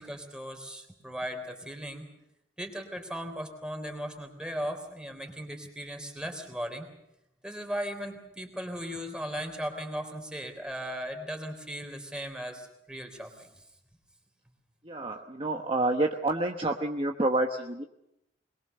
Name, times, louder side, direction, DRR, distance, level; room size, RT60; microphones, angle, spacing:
voice 1, 0.0-2.1 2.6-6.9 7.4-13.6, equal, 5° right, 4 dB, 3.6 m, -37 dB
voice 2, 14.8-17.9, right 2 dB, 30° right, 3 dB, 1.1 m, -28 dB
22.5 x 21.5 x 6.8 m, 0.83 s
head